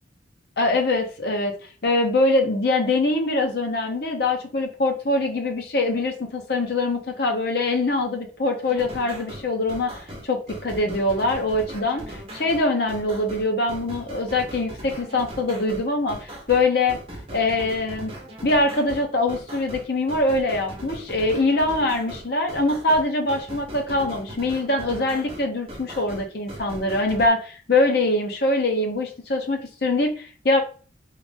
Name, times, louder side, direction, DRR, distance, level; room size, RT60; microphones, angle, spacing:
voice 1, 0.6-1.5 1.8-17.0 17.3-18.1 18.4-30.6, left 2 dB, 55° left, 3 dB, 0.7 m, -23 dB
sound 1, 8.6-27.3, right 1 dB, 30° right, 0.9 m, -39 dB
3.2 x 2.5 x 3.5 m, 0.38 s
head